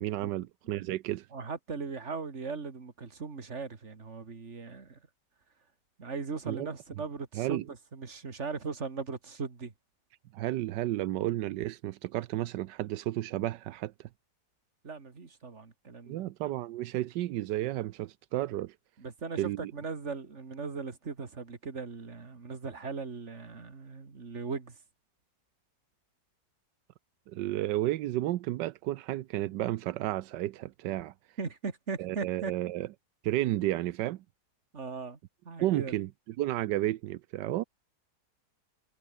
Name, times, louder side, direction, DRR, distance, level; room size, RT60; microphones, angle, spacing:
voice 1, 0.0-1.3 6.5-6.7 7.3-7.6 10.3-14.1 16.1-18.7 19.4-19.7 27.3-31.1 32.0-32.9 33.2-34.2 35.6-36.1 36.4-37.6, right 15 dB, 85° right, 1.3 m, -32 dB
voice 2, 1.3-5.0 6.0-9.7 14.8-16.3 19.0-24.8 31.4-32.5 34.7-35.2 35.4-35.9, right 4 dB, 40° right, 2.5 m, -38 dB
omnidirectional pair, 1.9 m